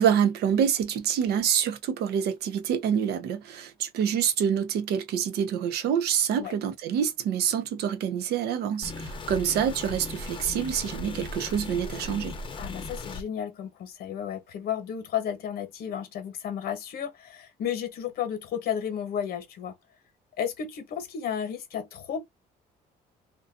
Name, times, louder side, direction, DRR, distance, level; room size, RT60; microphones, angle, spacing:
voice 1, 0.0-12.3, right 8 dB, 75° right, 0.6 m, -26 dB
sound 1, 8.8-13.2, left 3 dB, 30° left, 0.7 m, -37 dB
voice 2, 12.6-19.7 20.4-22.2, left 8 dB, 65° left, 0.9 m, -33 dB
2.5 x 2.2 x 2.6 m
cardioid pair, 110°, 17 cm